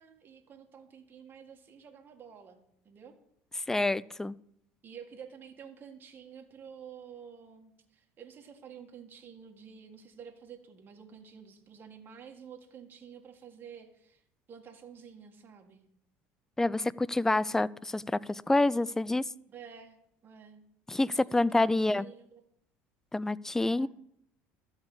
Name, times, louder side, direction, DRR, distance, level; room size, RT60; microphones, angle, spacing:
voice 1, 0.0-2.6 2.8-3.1 4.8-14.2 14.5-15.8 19.5-20.0 20.2-20.6 21.4-22.4 23.7-23.9, right 7 dB, 35° right, 2 dB, 1.8 m, -50 dB
voice 2, 3.7-4.3 16.6-19.3 20.9-22.1 23.1-23.9, left 2 dB, 10° left, 21 dB, 0.3 m, -27 dB
13.0 x 4.8 x 8.5 m, 0.73 s
supercardioid pair, 105°, 6 cm